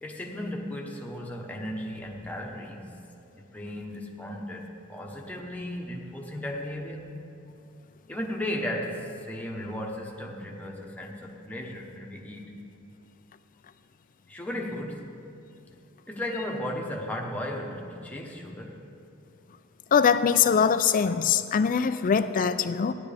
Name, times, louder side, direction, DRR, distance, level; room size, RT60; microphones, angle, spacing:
voice 1, 0.0-3.0 3.3-7.2 8.1-12.5 14.3-15.1 16.1-18.8, left 1 dB, 5° left, -1 dB, 1.0 m, -35 dB
voice 2, 19.9-22.9, left 6 dB, 40° left, 11 dB, 0.4 m, -22 dB
15.0 x 10.5 x 3.4 m, 2.6 s
head